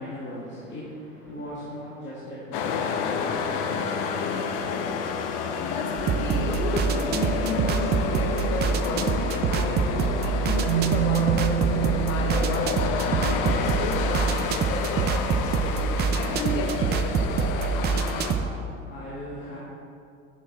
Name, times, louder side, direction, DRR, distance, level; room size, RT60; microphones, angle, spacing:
voice 1, 0.0-5.6 18.1-19.6, left 1 dB, 30° left, -9 dB, 2.0 m, -40 dB
sound 1, 2.5-18.3, left 5 dB, 50° left, 0.8 m, -29 dB
voice 2, 5.6-17.1, left 3 dB, 80° left, 1 dB, 1.3 m, -33 dB
sound 2, 6.0-18.5, right 6 dB, 25° right, 0.4 m, -26 dB
Marimba xylophone, 10.6-13.6, right 11 dB, 60° right, 1.1 m, -28 dB
7.3 x 6.3 x 4.2 m, 2.4 s
hypercardioid pair, 85°, 39 cm